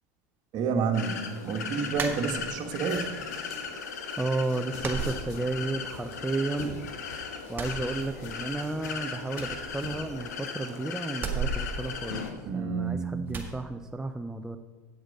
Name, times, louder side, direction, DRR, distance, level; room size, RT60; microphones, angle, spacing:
voice 1, 0.5-3.1 12.5-13.4, right 5 dB, 50° right, 6 dB, 1.3 m, -29 dB
sound 1, 0.9-12.3, left 6 dB, 85° left, 1.2 m, -37 dB
sound 2, 1.9-2.8 3.2-3.9 4.2-4.3 4.8-5.9 6.2-7.0 7.4-8.6 8.9-9.0 9.3-10.5 11.1-12.8 13.3-13.6, right 4 dB, 25° right, 1.7 m, -36 dB
sound 3, 2.8-10.2, left 2 dB, 70° left, 3.2 m, -46 dB
voice 2, 4.2-6.8 7.5-12.2 12.5-14.6, right 2 dB, 5° right, 6 dB, 0.5 m, -32 dB
8.3 x 7.9 x 5.2 m, 1.3 s
hypercardioid pair, 95°, 9 cm